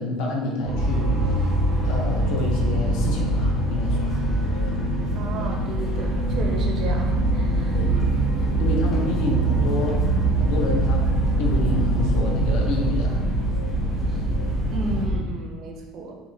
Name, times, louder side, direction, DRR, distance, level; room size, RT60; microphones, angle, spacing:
voice 1, 0.0-1.4 1.8-4.2 4.6-4.7 7.7-8.0 8.6-10.0 10.4-11.0 11.4-13.2, left 2 dB, 55° left, 0 dB, 0.6 m, -28 dB
sound 1, 0.6-15.2, right 1 dB, 5° right, 0.9 m, -23 dB
sound 2, 0.8-15.0, right 1 dB, 25° left, 0.8 m, -32 dB
voice 2, 5.2-7.8 14.7-16.1, right 3 dB, 35° right, 1 dB, 0.4 m, -33 dB
3.5 x 2.8 x 2.6 m, 1.2 s
cardioid pair, 175°, 0 cm